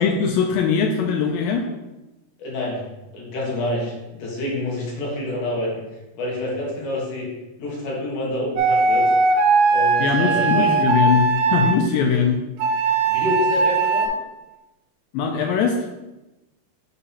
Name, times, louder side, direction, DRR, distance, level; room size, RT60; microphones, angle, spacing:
voice 1, 0.0-1.6 10.0-12.4 15.1-15.8, left 6 dB, 85° left, 3 dB, 2.1 m, -21 dB
voice 2, 2.4-2.9 3.1-5.8 6.1-7.3 7.6-9.1 9.7-10.8 13.1-14.1, left 1 dB, 65° left, -3 dB, 2.4 m, -27 dB
sound 1, 8.6-11.8 12.6-14.1, right 4 dB, 80° right, 2.3 m, -19 dB
6.9 x 2.8 x 5.5 m, 1.0 s
omnidirectional pair, 4.4 m